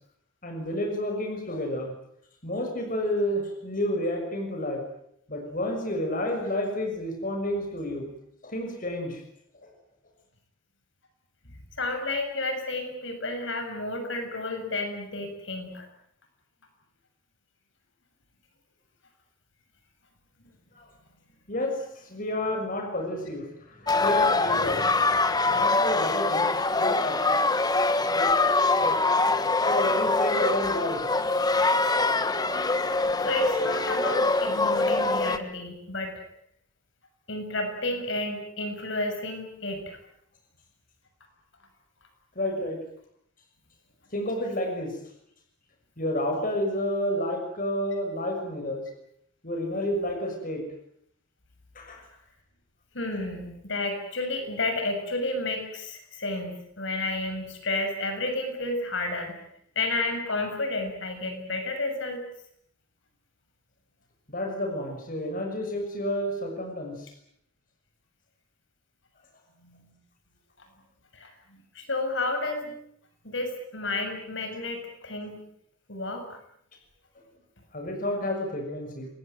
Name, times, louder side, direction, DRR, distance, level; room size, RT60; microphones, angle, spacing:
voice 1, 0.4-1.9 2.4-4.8 5.3-8.1 8.4-9.2 20.7-20.9 21.5-27.4 28.1-28.3 28.8-28.9 29.6-31.0 42.3-42.8 44.1-45.0 46.0-48.8 49.4-50.6 51.7-52.0 64.3-67.1 77.7-79.1, left 1 dB, 45° left, 3 dB, 6.4 m, -30 dB
voice 2, 11.8-15.9 33.2-36.1 37.3-40.0 52.9-59.4 59.8-62.2 69.6-69.9 71.1-71.3 71.8-72.7 73.2-75.4 75.9-76.4, left 2 dB, 65° left, 5 dB, 7.1 m, -31 dB
sound 1, 23.9-35.4, left 3 dB, 20° left, 1.5 m, -24 dB
28.0 x 21.0 x 9.3 m, 0.73 s
head